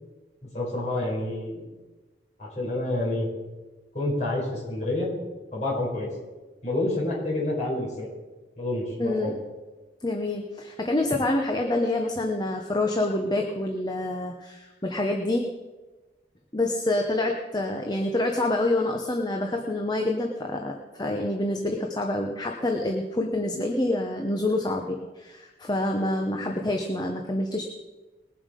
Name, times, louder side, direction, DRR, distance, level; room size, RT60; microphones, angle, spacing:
voice 1, 0.5-1.7 2.4-3.3 3.9-5.1 5.5-6.1 6.6-8.1 8.6-9.4, left 2 dB, 40° left, -5 dB, 5.2 m, -28 dB
voice 2, 9.0-9.4 10.0-15.5 16.5-27.6, left 1 dB, 20° left, 2 dB, 0.9 m, -27 dB
20.5 x 7.5 x 5.3 m, 1.2 s
head